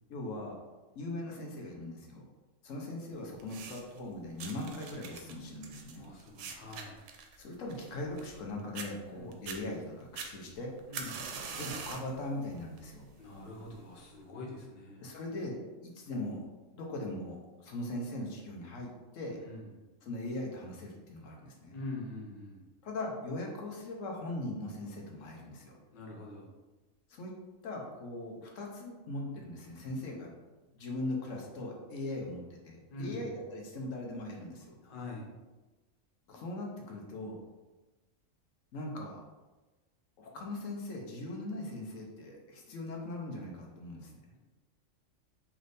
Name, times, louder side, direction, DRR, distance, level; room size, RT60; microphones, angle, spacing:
voice 1, 0.1-0.6 0.9-2.2 2.6-6.1 7.4-10.8 11.6-13.1 15.0-16.4 16.7-19.4 20.0-21.8 22.8-25.7 27.1-27.3 27.6-30.3 30.7-34.7 36.3-37.4 38.7-39.2 40.2-44.1, left 1 dB, 80° left, 0 dB, 1.1 m, -40 dB
sound 1, 3.4-4.0 4.4-8.4 8.7-8.9 9.3-9.6 10.2-12.1 12.6-12.9 13.7-13.8, right 5 dB, 75° right, 0.9 m, -43 dB
voice 2, 6.0-7.0 9.1-9.3 10.9-11.2 13.2-15.1 19.4-19.7 21.7-22.6 25.9-26.5 32.9-33.4 34.8-35.3, left 2 dB, 45° left, -2 dB, 0.9 m, -44 dB
3.3 x 3.1 x 4.0 m, 1.2 s
omnidirectional pair, 1.3 m